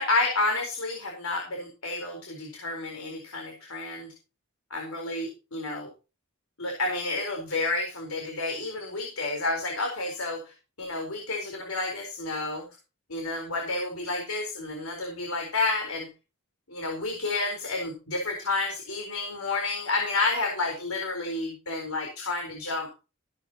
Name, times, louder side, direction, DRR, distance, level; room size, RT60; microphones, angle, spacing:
voice 1, 0.0-4.1 4.7-5.9 6.6-10.5 10.8-12.6 13.1-16.1 16.7-22.9, left 3 dB, 90° left, 2 dB, 4.3 m, -30 dB
15.5 x 12.5 x 2.9 m, 0.31 s
head